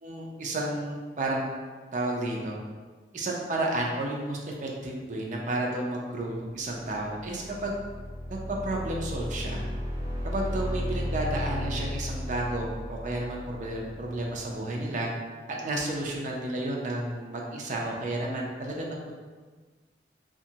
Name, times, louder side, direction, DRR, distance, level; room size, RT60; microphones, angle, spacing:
voice 1, 0.0-1.4 1.9-2.6 3.1-7.7 8.5-9.6 10.2-15.1 15.6-19.1, right 1 dB, 45° right, -1 dB, 0.4 m, -32 dB
sound 1, 7.0-14.6, left 1 dB, 15° right, 1.3 m, -34 dB
2.9 x 2.3 x 2.7 m, 1.4 s
head